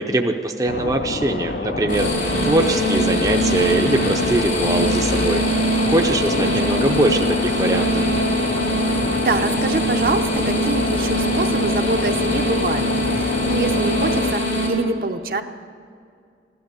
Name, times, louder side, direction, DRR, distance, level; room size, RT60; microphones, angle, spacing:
voice 1, 0.0-5.4 5.9-8.1, right 1 dB, 20° right, 3 dB, 0.6 m, -22 dB
sound 1, 0.7-14.3, left 2 dB, 60° left, 0.6 m, -28 dB
sound 2, 1.9-14.7, equal, 85° left, 3.5 m, -22 dB
voice 2, 6.1-6.8 9.2-15.4, right 2 dB, 55° right, 6 dB, 0.7 m, -25 dB
15.5 x 12.0 x 6.8 m, 2.3 s
head